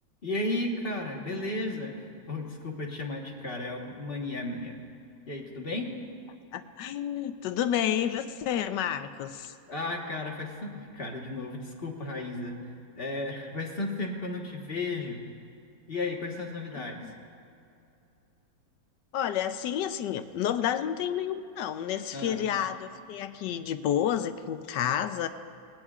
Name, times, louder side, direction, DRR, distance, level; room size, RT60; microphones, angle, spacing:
voice 1, 0.2-4.7 5.3-5.9 9.7-12.6 13.0-15.2 15.9-17.0 22.1-22.4, left 2 dB, 35° left, 0 dB, 1.3 m, -34 dB
voice 2, 6.5-9.5 16.7-17.1 19.1-25.3, left 10 dB, 70° left, 10 dB, 1.2 m, -30 dB
19.5 x 19.0 x 2.4 m, 2.7 s
omnidirectional pair, 2.1 m